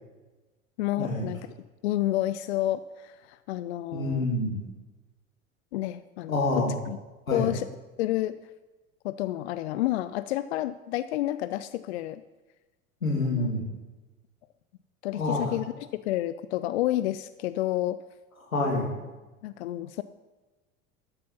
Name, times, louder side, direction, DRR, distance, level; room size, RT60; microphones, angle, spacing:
voice 1, 0.8-1.4 1.8-4.3 5.7-7.0 7.3-7.7 8.0-8.4 9.0-12.2 13.3-13.5 15.0-15.7 15.9-18.0 19.4-20.0, left 15 dB, 55° left, 14 dB, 0.5 m, -30 dB
voice 2, 3.9-4.6 6.3-6.8 7.3-7.5 13.0-13.6 15.1-15.5 18.5-19.0, left 2 dB, 80° left, -1 dB, 2.8 m, -27 dB
12.5 x 7.7 x 5.5 m, 1.2 s
figure-of-eight pair, 75°, 41 cm